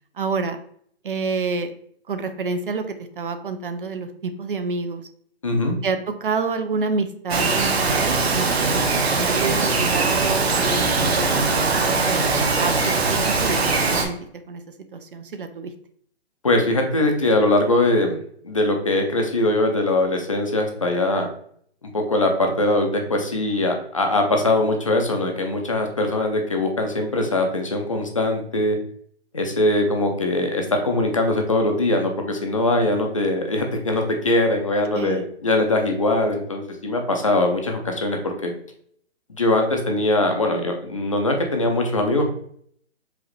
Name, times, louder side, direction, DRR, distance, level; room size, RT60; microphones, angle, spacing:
voice 1, 0.2-0.6 1.0-1.7 2.1-5.1 5.8-14.2 14.5-14.6 14.9-15.7 34.9-35.3, right 4 dB, 55° right, 8 dB, 0.5 m, -28 dB
voice 2, 5.4-5.8 16.4-18.2 18.4-21.3 21.9-28.8 29.3-38.5 39.3-42.3, left 2 dB, 30° left, 3 dB, 0.5 m, -21 dB
Bird vocalization bird call bird song, 7.3-14.0, right 3 dB, 70° right, 1.0 m, -21 dB
4.9 x 3.1 x 3.1 m, 0.63 s
hypercardioid pair, 175°, 33 cm